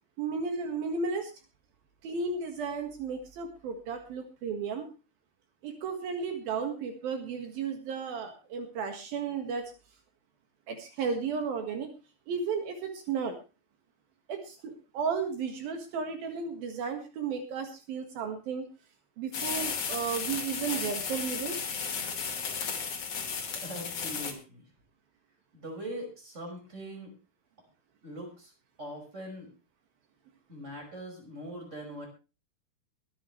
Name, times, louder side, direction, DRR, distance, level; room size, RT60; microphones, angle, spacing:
voice 1, 0.2-1.3 2.0-4.9 5.6-9.7 10.7-11.9 12.3-13.4 14.3-18.6 19.2-21.6, right 5 dB, 75° right, 5 dB, 3.5 m, -34 dB
sound 1, 19.3-24.3, left 6 dB, 45° left, 2.9 m, -34 dB
voice 2, 23.6-24.7 25.5-27.1 28.0-28.5 28.8-29.5 30.5-32.1, equal, 20° right, 2 dB, 5.5 m, -41 dB
23.0 x 9.5 x 3.2 m, 0.31 s
omnidirectional pair, 4.3 m